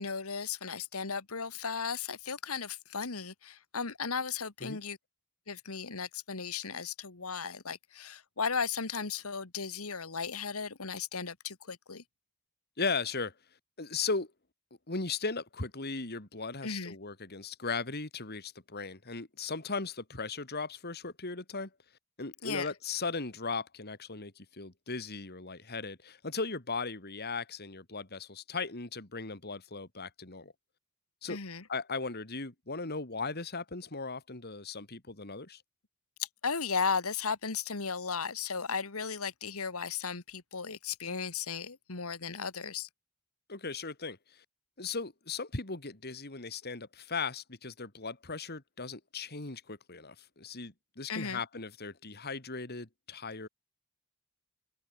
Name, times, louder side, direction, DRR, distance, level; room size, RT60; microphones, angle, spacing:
voice 1, 0.0-5.0 5.5-12.0 16.6-17.0 22.4-22.7 31.3-31.6 36.2-42.9 51.1-51.4, left 5 dB, 75° left, 1.7 m, -35 dB
voice 2, 12.8-13.3 13.8-14.3 14.9-21.7 22.2-30.5 31.2-31.4 31.7-35.6 43.5-44.4 44.8-53.5, left 4 dB, 45° left, 2.7 m, -37 dB
open air
head